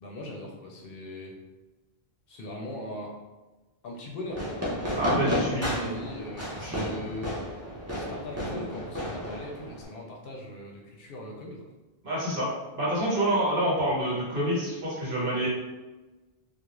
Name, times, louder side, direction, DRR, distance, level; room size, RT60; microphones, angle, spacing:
voice 1, 0.0-1.4 2.3-3.2 3.8-11.7, left 1 dB, 70° left, -1 dB, 0.7 m, -40 dB
Fireworks, 4.3-9.9, equal, 25° right, 0.4 m, -32 dB
voice 2, 4.9-6.0 6.6-6.9 12.0-12.5 12.7-15.5, right 1 dB, 60° right, -6 dB, 1.1 m, -27 dB
2.4 x 2.1 x 3.0 m, 1.2 s
omnidirectional pair, 1.0 m